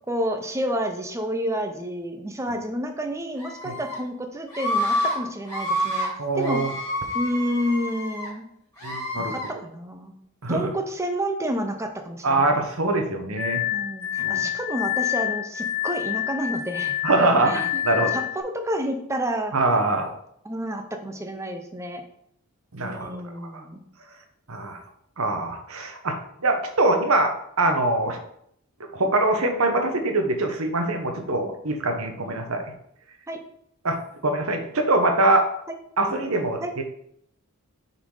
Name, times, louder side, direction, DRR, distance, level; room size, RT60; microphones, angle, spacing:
voice 1, 0.1-6.1 6.4-6.6 7.1-8.4 9.3-10.1 10.5-12.5 13.7-19.8 20.4-22.0 22.8-23.8 33.3-33.4 36.6-36.7, equal, 15° right, 5 dB, 0.7 m, -30 dB
Screaming, 3.4-4.0 4.5-5.2 5.4-6.1 6.4-8.3 8.8-9.5, equal, 15° left, 2.8 m, -28 dB
voice 2, 6.2-6.7 8.8-9.4 10.4-10.6 12.2-13.6 14.2-14.5 17.0-17.5 17.8-18.1 19.5-20.1 22.7-23.1 23.5-23.6 24.5-24.8 25.2-28.2 28.9-32.6 33.8-35.5 36.0-36.8, right 2 dB, 70° right, 5 dB, 1.1 m, -23 dB
Glass, 13.4-18.4, left 13 dB, 70° left, 1.6 m, -28 dB
6.8 x 4.2 x 4.8 m, 0.72 s
head